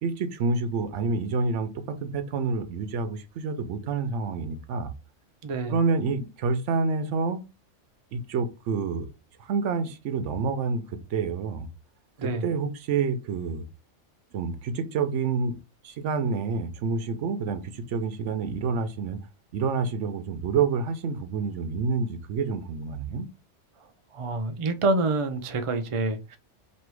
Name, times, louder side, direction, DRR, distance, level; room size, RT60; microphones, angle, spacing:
voice 1, 0.0-4.9 5.7-7.4 8.1-9.1 9.4-11.7 12.2-13.6 14.3-15.6 15.8-19.2 19.5-23.3, right 4 dB, 80° right, 0.9 m, -28 dB
voice 2, 5.4-5.8 12.2-12.5 24.1-26.4, right 2 dB, 60° right, 0.3 m, -27 dB
3.2 x 2.7 x 4.5 m
omnidirectional pair, 1.2 m